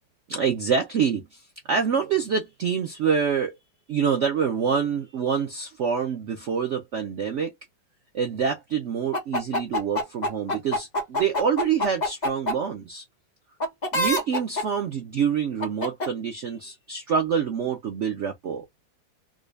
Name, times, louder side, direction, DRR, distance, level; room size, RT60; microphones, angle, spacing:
voice 1, 0.3-3.5 3.9-7.5 8.1-13.0 13.9-18.6, right 7 dB, 85° right, 0.6 m, -26 dB
sound 1, 9.1-12.5 13.6-14.6 15.6-16.1, left 1 dB, 30° left, 1.0 m, -25 dB
3.8 x 2.3 x 3.2 m
omnidirectional pair, 2.1 m